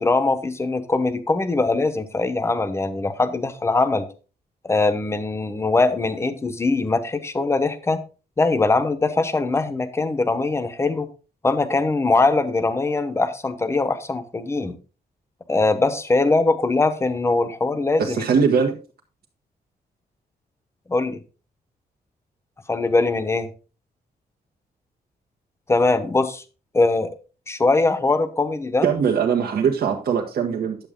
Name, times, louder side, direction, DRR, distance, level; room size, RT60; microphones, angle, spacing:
voice 1, 0.0-4.1 4.6-8.0 8.4-11.1 11.4-14.7 15.5-18.2 20.9-21.2 22.7-23.5 25.7-26.4 26.7-27.1 27.5-28.9, left 3 dB, 15° left, 9 dB, 0.9 m, -21 dB
voice 2, 18.0-18.8 28.8-30.8, right 6 dB, 65° right, 1 dB, 1.3 m, -21 dB
10.5 x 7.8 x 3.6 m, 0.34 s
wide cardioid pair, 170°, 17 cm